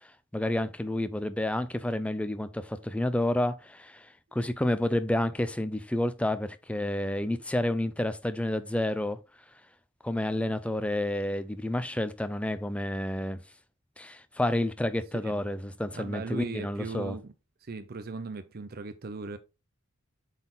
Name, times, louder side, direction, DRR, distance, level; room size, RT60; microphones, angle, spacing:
voice 1, 0.3-9.2 10.0-13.4 14.0-17.2, left 1 dB, 5° left, 0.4 m, -30 dB
voice 2, 15.9-17.3 17.6-19.4, right 4 dB, 45° right, 0.5 m, -38 dB
7.9 x 4.2 x 3.9 m
head